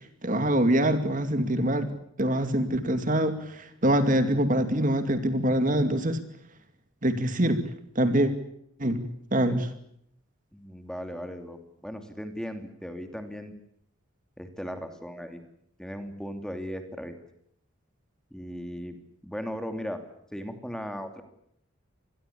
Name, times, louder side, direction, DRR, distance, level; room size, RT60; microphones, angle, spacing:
voice 1, 0.2-1.9 2.2-6.2 7.0-7.6 8.0-8.3 8.8-9.0 9.3-9.7, right 1 dB, 40° right, 9 dB, 2.5 m, -24 dB
voice 2, 10.5-13.5 14.4-15.4 15.8-17.2 18.3-19.0 19.2-20.0 20.3-21.2, equal, 5° left, 7 dB, 2.8 m, -37 dB
26.5 x 21.0 x 8.6 m, 0.71 s
head